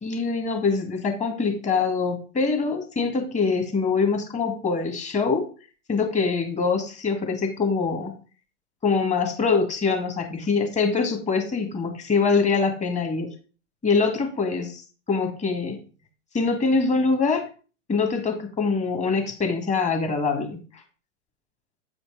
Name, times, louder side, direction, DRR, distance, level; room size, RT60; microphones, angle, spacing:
voice 1, 0.0-5.5 5.9-8.2 8.8-13.3 13.8-14.8 15.1-15.8 16.3-17.5 17.9-20.6, left 4 dB, 20° left, 4 dB, 2.1 m, -24 dB
8.6 x 5.1 x 4.9 m, 0.37 s
hypercardioid pair, 120°, 38 cm